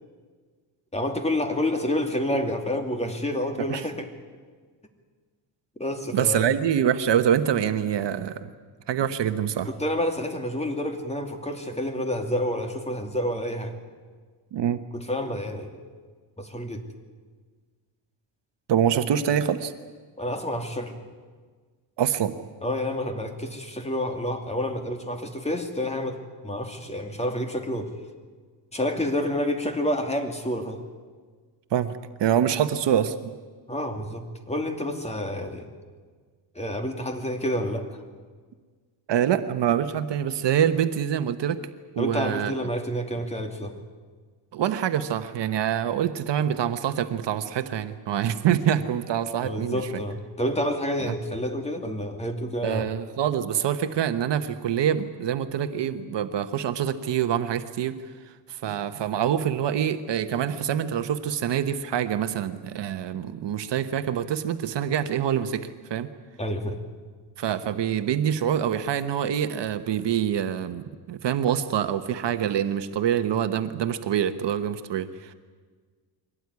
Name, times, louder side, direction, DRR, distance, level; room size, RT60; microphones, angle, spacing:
voice 1, 0.9-4.1 5.8-6.5 9.0-9.1 9.6-13.7 14.9-15.7 16.4-16.8 20.2-20.9 22.6-26.2 26.4-27.9 28.7-30.8 33.7-35.7 36.5-38.0 42.0-43.7 49.4-52.9 66.4-66.8, left 1 dB, 15° left, 5 dB, 2.6 m, -29 dB
voice 2, 6.1-8.5 8.9-9.7 14.5-14.8 18.7-19.7 22.0-22.3 31.7-31.9 32.2-33.1 39.1-41.6 41.9-42.5 44.5-49.9 51.1-51.2 52.6-58.0 58.5-66.1 67.4-75.3, right 9 dB, 60° right, 9 dB, 1.2 m, -25 dB
23.5 x 18.0 x 9.7 m, 1.5 s
cardioid pair, 120°, 49 cm